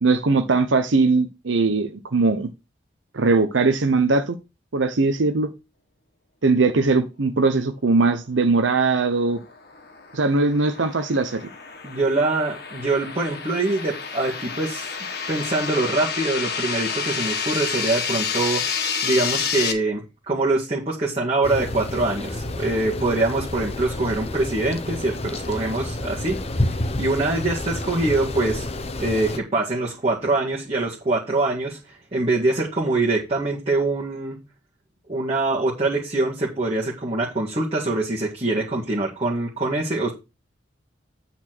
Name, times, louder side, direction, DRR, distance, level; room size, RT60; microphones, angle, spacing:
voice 1, 0.0-2.5 3.1-4.4 4.7-5.5 6.4-9.4 10.1-11.5, right 3 dB, 90° right, 0.8 m, -20 dB
sound 1, 9.3-19.7, left 6 dB, 55° left, 1.6 m, -29 dB
voice 2, 11.8-14.9 15.3-18.7 19.0-26.4 26.7-28.7 29.0-31.8 32.1-34.4 35.1-40.1, right 2 dB, 35° right, 2.0 m, -24 dB
sound 2, 21.4-29.4, left 1 dB, 35° left, 0.8 m, -29 dB
8.9 x 4.2 x 6.1 m
head